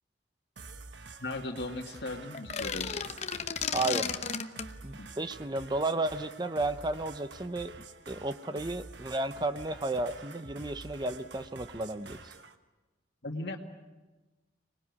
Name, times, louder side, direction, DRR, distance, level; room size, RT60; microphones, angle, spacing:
sound 1, 0.6-12.6, right 3 dB, 70° right, 1.3 m, -48 dB
voice 1, 1.2-3.0 5.0-5.2 13.2-13.6, left 2 dB, 60° left, 1 dB, 2.0 m, -37 dB
sound 2, 2.3-4.7, left 6 dB, 35° left, 0.9 m, -33 dB
voice 2, 3.7-4.1 4.8-7.7 8.1-12.3, right 2 dB, 25° right, 11 dB, 0.7 m, -33 dB
25.5 x 19.5 x 9.5 m, 1.2 s
head